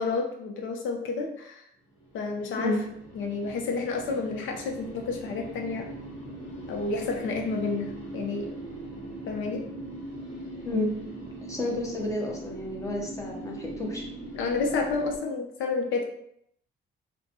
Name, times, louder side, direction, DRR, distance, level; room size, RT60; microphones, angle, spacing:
voice 1, 0.0-1.6 2.1-2.8 3.1-5.8 6.7-8.5 9.3-9.7 14.3-16.0, left 4 dB, 80° left, 2 dB, 0.6 m, -30 dB
sound 1, 2.0-15.2, right 1 dB, 45° left, 1.3 m, -41 dB
voice 2, 11.4-14.0, left 2 dB, 15° left, -2 dB, 0.8 m, -30 dB
2.5 x 2.1 x 2.8 m, 0.72 s
cardioid pair, 90°, 20 cm